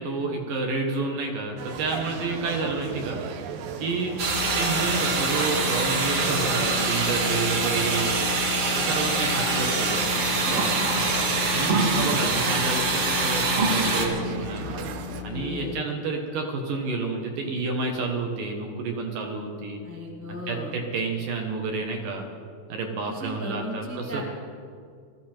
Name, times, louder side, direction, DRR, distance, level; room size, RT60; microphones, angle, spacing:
voice 1, 0.0-3.2 3.8-4.1 4.6-8.3 8.8-10.9 11.5-14.7 15.2-19.8 20.3-22.2 22.7-24.2, right 3 dB, 65° right, 2 dB, 2.4 m, -30 dB
sound 1, 1.6-15.2, right 6 dB, 80° right, 2.0 m, -37 dB
sound 2, 4.1-15.8, left 14 dB, 85° left, 2.3 m, -35 dB
sound 3, 4.2-14.1, right 3 dB, 45° right, 2.0 m, -25 dB
voice 2, 11.8-12.5 14.5-14.9 15.2-15.8 19.8-20.7 23.0-24.2, left 1 dB, 10° left, -2 dB, 0.5 m, -38 dB
21.0 x 14.0 x 4.5 m, 2.2 s
omnidirectional pair, 5.1 m